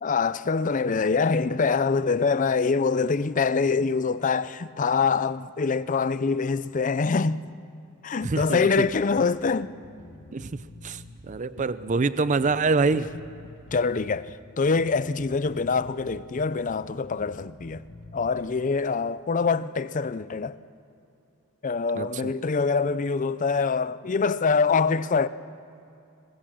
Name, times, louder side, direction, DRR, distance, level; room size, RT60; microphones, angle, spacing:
voice 1, 0.0-7.5 8.0-9.7 13.7-14.3 14.6-17.8 18.1-20.6 21.6-25.3, left 4 dB, 35° left, 0.5 m, -24 dB
voice 2, 8.2-8.9 10.3-13.1 21.9-22.1, right 3 dB, 35° right, 0.5 m, -25 dB
Bass guitar, 8.7-18.3, left 2 dB, 50° left, 1.1 m, -47 dB
22.0 x 21.5 x 6.2 m
head